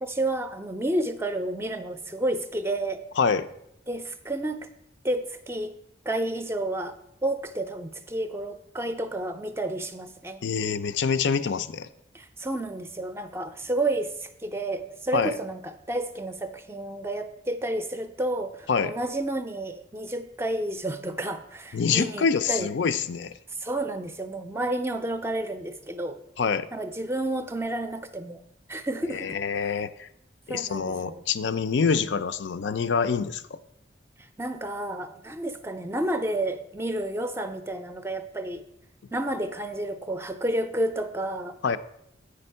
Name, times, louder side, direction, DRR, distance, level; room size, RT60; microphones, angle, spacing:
voice 1, 0.0-3.0 3.9-4.7 5.0-5.7 6.1-10.4 12.1-22.7 23.6-26.2 26.7-28.4 28.7-29.4 30.5-31.2 34.4-38.6 39.1-41.6, right 1 dB, 15° right, 9 dB, 0.4 m, -30 dB
voice 2, 3.2-3.5 10.4-11.9 15.1-15.3 18.7-18.9 21.7-23.3 26.4-26.7 29.1-30.1 30.5-33.6 41.6-41.8, left 5 dB, 75° left, 11 dB, 0.4 m, -26 dB
8.4 x 5.2 x 5.5 m, 0.78 s
head